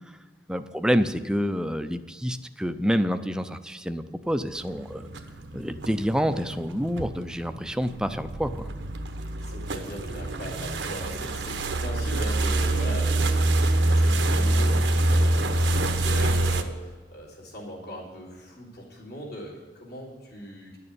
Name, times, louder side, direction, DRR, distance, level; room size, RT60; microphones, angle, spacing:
voice 1, 0.5-5.1 5.5-8.7, equal, 5° right, 9 dB, 0.5 m, -27 dB
sound 1, 4.3-16.6, right 1 dB, 80° right, 1.0 m, -26 dB
voice 2, 9.4-20.8, equal, 60° left, -4 dB, 3.6 m, -39 dB
11.5 x 6.8 x 8.8 m, 1.3 s
head